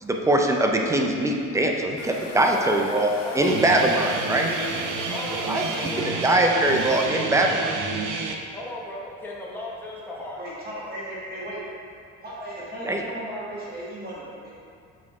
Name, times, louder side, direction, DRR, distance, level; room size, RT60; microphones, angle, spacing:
voice 1, 0.0-3.1 3.4-4.5 5.4-5.6 6.0-7.8 12.8-13.0, right 1 dB, 10° right, 1 dB, 0.3 m, -22 dB
sound 1, 2.0-7.1, left 3 dB, 55° left, 1.0 m, -40 dB
voice 2, 2.5-4.0 5.1-6.7 8.5-10.4, left 1 dB, 5° left, -5 dB, 0.9 m, -36 dB
Guitar, 3.4-8.4, right 4 dB, 70° right, 0.7 m, -30 dB
voice 3, 10.4-11.6 12.2-14.5, right 1 dB, 30° right, -7 dB, 1.3 m, -36 dB
6.0 x 4.6 x 4.7 m, 2.3 s
cardioid pair, 160°, 31 cm